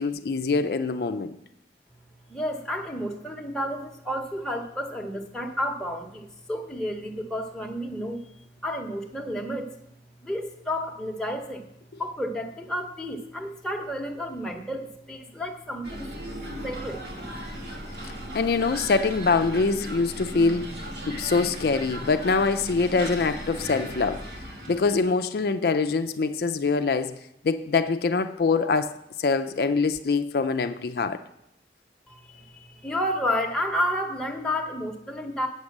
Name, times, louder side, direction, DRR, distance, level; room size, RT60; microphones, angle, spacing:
voice 1, 0.0-1.4 18.0-24.3 24.7-31.2, left 4 dB, 60° left, 0.4 m, -24 dB
voice 2, 2.3-8.2 8.6-9.7 10.2-11.7 12.0-16.1 16.6-17.1 32.1-35.5, equal, 5° left, 1.0 m, -31 dB
sound 1, 15.8-25.1, right 1 dB, 75° right, 2.2 m, -37 dB
8.6 x 6.5 x 7.2 m
head